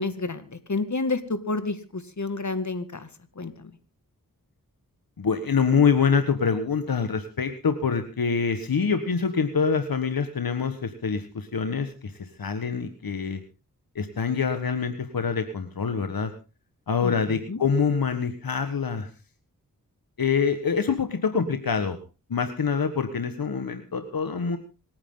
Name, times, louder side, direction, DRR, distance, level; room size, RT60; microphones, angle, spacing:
voice 1, 0.0-3.1 3.4-3.7 17.0-17.6, left 3 dB, 55° left, 10 dB, 2.2 m, -30 dB
voice 2, 5.2-13.4 13.9-16.3 16.9-19.1 20.2-22.0 22.3-24.6, left 5 dB, 80° left, 8 dB, 1.5 m, -25 dB
26.5 x 9.8 x 3.8 m, 0.32 s
cardioid pair, 50°, 35 cm